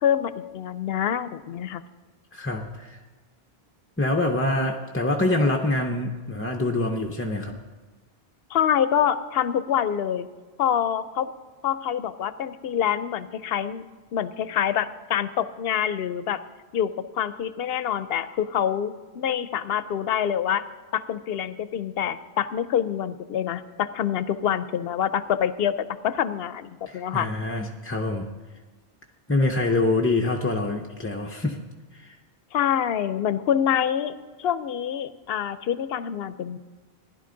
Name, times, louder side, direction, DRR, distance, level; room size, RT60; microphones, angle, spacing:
voice 1, 0.0-1.8 8.5-10.3 10.6-11.3 11.6-13.8 14.1-16.4 16.7-20.6 20.9-25.7 26.0-27.3 32.5-34.1 34.4-36.6, left 9 dB, 70° left, 14 dB, 0.8 m, -26 dB
voice 2, 2.3-3.0 4.0-7.5 26.9-28.3 29.3-31.6 31.9-32.2, left 2 dB, 15° left, 2 dB, 0.5 m, -25 dB
16.0 x 10.5 x 3.8 m, 1.3 s
omnidirectional pair, 1.1 m